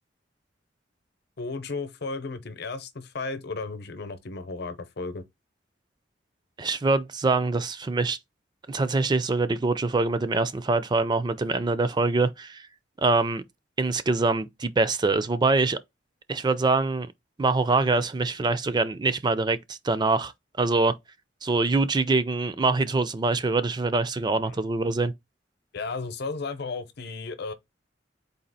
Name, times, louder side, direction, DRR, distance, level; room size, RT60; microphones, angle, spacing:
voice 1, 1.4-5.2 24.4-24.6 25.7-27.5, left 3 dB, 65° left, 0.8 m, -34 dB
voice 2, 6.6-8.2 8.7-12.7 13.0-13.4 13.8-15.8 16.3-17.1 17.4-20.3 20.6-20.9 21.4-25.1, right 3 dB, 25° right, 0.4 m, -24 dB
4.1 x 2.8 x 4.1 m
head